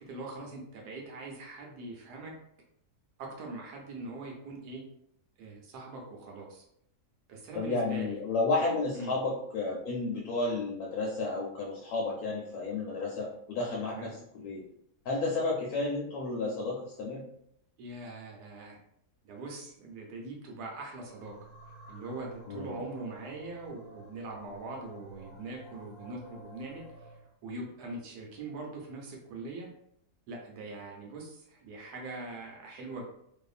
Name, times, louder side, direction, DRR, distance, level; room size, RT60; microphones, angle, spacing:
voice 1, 0.0-2.3 3.2-4.8 5.4-6.6 7.3-8.2 8.9-9.1 13.9-14.1 17.8-18.8 19.2-21.4 21.9-29.7 30.3-33.0, right 2 dB, 75° right, -1 dB, 1.2 m, -42 dB
voice 2, 7.5-14.6 15.0-17.2 22.5-22.8, left 3 dB, 70° left, -3 dB, 1.0 m, -32 dB
sound 1, 21.1-27.2, right 1 dB, 45° left, 1.0 m, -51 dB
2.7 x 2.4 x 2.4 m, 0.73 s
omnidirectional pair, 1.8 m